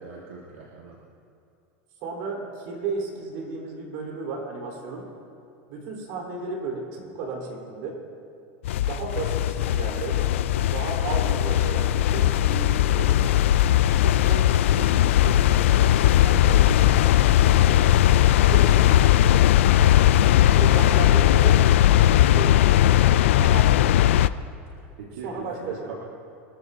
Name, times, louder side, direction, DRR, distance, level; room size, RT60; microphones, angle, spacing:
voice 1, 0.0-1.0 25.0-25.9, right 5 dB, 85° right, -3 dB, 1.7 m, -41 dB
voice 2, 2.0-5.1 5.7-8.0 8.8-10.2 10.6-13.5 13.8-17.8 18.3-19.3 20.5-22.6 23.4-23.8 25.2-25.9, right 3 dB, 65° right, -1 dB, 4.2 m, -34 dB
sound 1, 8.7-24.3, left 12 dB, 85° left, 0.4 m, -18 dB
24.5 x 14.0 x 2.8 m, 2.6 s
supercardioid pair, 110°, 7 cm